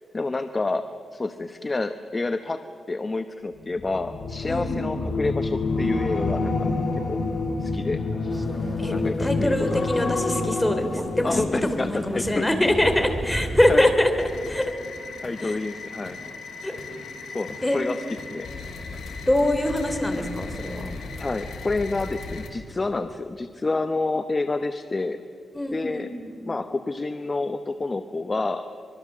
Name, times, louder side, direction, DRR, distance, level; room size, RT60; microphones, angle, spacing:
voice 1, 0.1-2.6 2.9-7.2 7.6-8.4 8.9-9.9 11.2-12.8 13.7-13.8 15.2-16.2 17.3-18.5 21.2-25.2 25.7-26.1 26.4-28.7, left 3 dB, 30° left, 9 dB, 0.9 m, -29 dB
sound 1, 3.7-13.1 13.4-13.8, left 3 dB, 65° left, 4.3 m, -28 dB
voice 2, 4.5-4.8 8.8-14.1 14.4-14.6 15.4-15.6 16.6-16.8 17.6-17.8 19.3-20.9 25.5-26.4, left 1 dB, 10° left, 6 dB, 3.2 m, -24 dB
Crow, 8.3-14.7, right 1 dB, 20° right, 1.6 m, -36 dB
sound 2, 14.2-22.5, left 3 dB, 80° left, 3.4 m, -37 dB
25.0 x 23.0 x 7.4 m, 2.3 s
cardioid pair, 95°, 0 cm